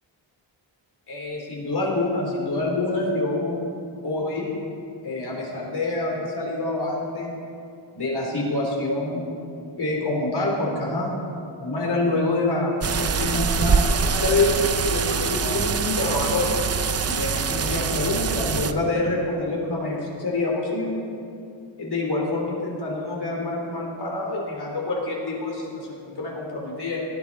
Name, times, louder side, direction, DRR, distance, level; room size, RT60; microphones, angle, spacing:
voice 1, 1.1-3.6 4.0-4.6 5.0-7.3 7.9-9.2 9.7-11.1 11.6-16.6 17.0-21.0 21.8-27.1, left 2 dB, 55° left, -3 dB, 3.7 m, -26 dB
sound 1, 12.8-18.7, right 6 dB, 35° right, 0.5 m, -24 dB
18.5 x 10.5 x 4.2 m, 2.5 s
wide cardioid pair, 115°, 47 cm